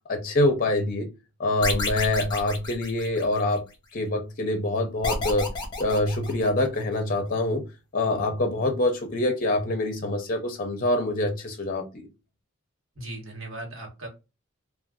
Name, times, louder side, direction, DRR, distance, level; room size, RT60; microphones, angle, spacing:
voice 1, 0.1-1.1 1.4-3.6 3.9-5.5 5.8-7.7 7.9-12.1, left 1 dB, 40° left, 0.5 m, -25 dB
sound 1, 1.6-3.6 5.0-6.8, left 3 dB, 20° left, 0.8 m, -31 dB
voice 2, 13.0-14.1, right 2 dB, 70° right, 1.2 m, -37 dB
2.4 x 2.3 x 3.5 m
head